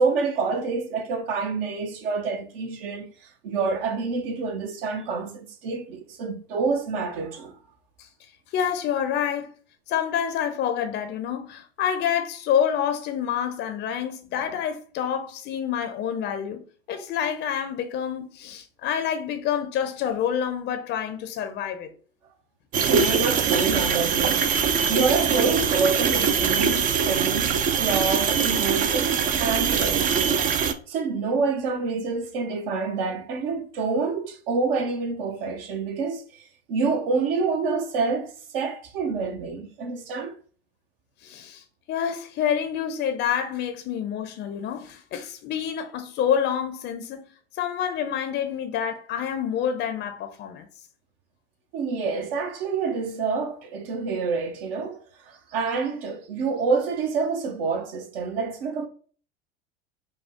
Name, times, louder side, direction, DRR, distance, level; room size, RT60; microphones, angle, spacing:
voice 1, 0.0-7.5 22.7-24.4 24.9-30.4 30.9-36.2 36.7-40.4 51.7-58.9, right 4 dB, 60° right, 1.1 m, -27 dB
voice 2, 8.5-9.5 9.9-21.9 41.2-47.3 47.5-50.7, left 8 dB, 35° left, 0.7 m, -28 dB
sound 1, 22.7-30.7, right 6 dB, 25° right, 0.5 m, -23 dB
5.3 x 2.2 x 3.5 m
figure-of-eight pair, 80°, 32 cm